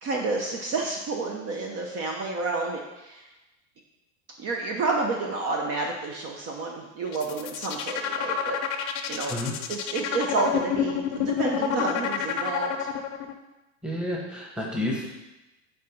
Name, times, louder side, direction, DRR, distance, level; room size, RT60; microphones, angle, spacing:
voice 1, 0.0-3.3 4.4-9.4 9.7-12.9, right 3 dB, 35° right, 1 dB, 0.8 m, -30 dB
sound 1, 7.1-13.3, left 9 dB, 45° left, 0.7 m, -28 dB
voice 2, 13.8-15.1, left 1 dB, ahead, -2 dB, 1.1 m, -30 dB
5.7 x 3.9 x 5.7 m, 1.0 s
supercardioid pair, 135°, 40 cm